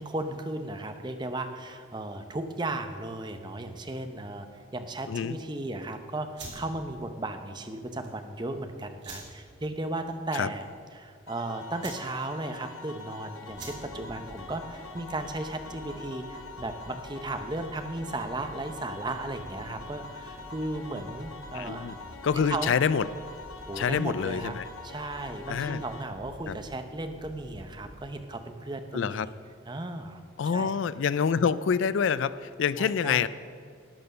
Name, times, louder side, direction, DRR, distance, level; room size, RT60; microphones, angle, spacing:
voice 1, 0.0-4.5 4.7-10.7 10.9-21.9 22.5-22.7 23.7-24.6 24.8-29.2 29.7-30.2 30.5-30.7 32.8-33.3, right 2 dB, 20° right, 7 dB, 0.7 m, -35 dB
voice 2, 5.1-5.4 10.3-10.5 21.5-21.9 22.2-23.1 23.8-24.7 25.5-25.8 26.5-26.6 28.9-29.3 30.4-33.3, left 6 dB, 65° left, 16 dB, 0.3 m, -26 dB
sound 1, 6.3-15.8, right 3 dB, 55° right, 3.0 m, -49 dB
sound 2, 11.3-26.0, left 4 dB, 85° left, 1.3 m, -45 dB
sound 3, 13.5-27.9, equal, 30° left, 1.2 m, -49 dB
12.0 x 8.9 x 6.7 m, 2.1 s
head